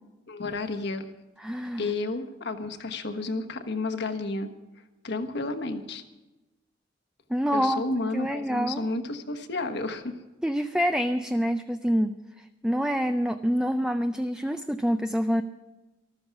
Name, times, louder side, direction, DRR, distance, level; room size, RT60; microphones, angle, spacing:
voice 1, 0.3-1.1 1.8-4.5 5.0-6.0 7.5-10.1, left 2 dB, 65° left, 7 dB, 1.3 m, -31 dB
voice 2, 1.4-1.8 7.3-7.8 8.1-8.8 10.4-12.1 12.6-15.4, equal, 5° right, 7 dB, 0.4 m, -26 dB
14.0 x 13.0 x 5.9 m, 1.1 s
head